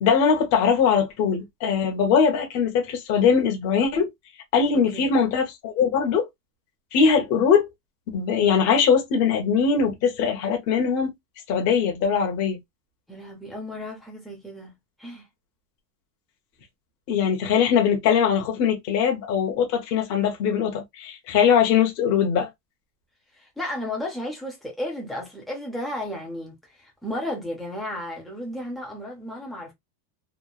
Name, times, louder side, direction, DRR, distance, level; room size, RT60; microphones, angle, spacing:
voice 1, 0.0-4.1 4.5-6.3 6.9-7.7 8.1-11.1 11.5-12.6 17.1-22.5, left 6 dB, 35° left, 0.9 m, -21 dB
voice 2, 4.7-5.1 13.1-14.7 15.0-15.3 23.3-29.7, left 1 dB, ahead, 0.4 m, -34 dB
3.1 x 2.1 x 2.2 m
supercardioid pair, 160°, 48 cm